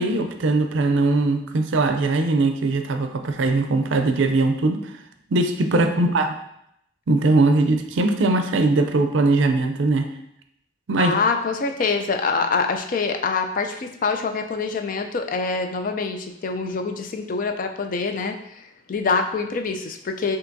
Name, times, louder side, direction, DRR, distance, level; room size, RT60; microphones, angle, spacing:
voice 1, 0.0-4.8 5.3-6.4 7.1-10.1 10.9-11.2, right 2 dB, 75° right, 6 dB, 0.4 m, -20 dB
voice 2, 5.7-6.1 11.0-18.6 18.9-20.4, left 4 dB, 45° left, 6 dB, 0.4 m, -25 dB
5.7 x 2.8 x 2.6 m, 0.77 s
head